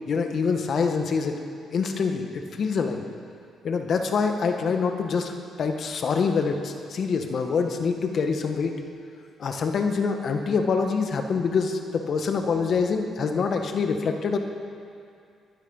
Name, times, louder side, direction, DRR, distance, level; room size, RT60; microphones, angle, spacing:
voice 1, 0.1-1.4 1.7-3.0 3.6-5.3 5.6-8.8 9.4-14.4, left 5 dB, 55° left, 5 dB, 1.5 m, -25 dB
19.5 x 11.5 x 5.5 m, 2.4 s
cardioid pair, 90°, 0 cm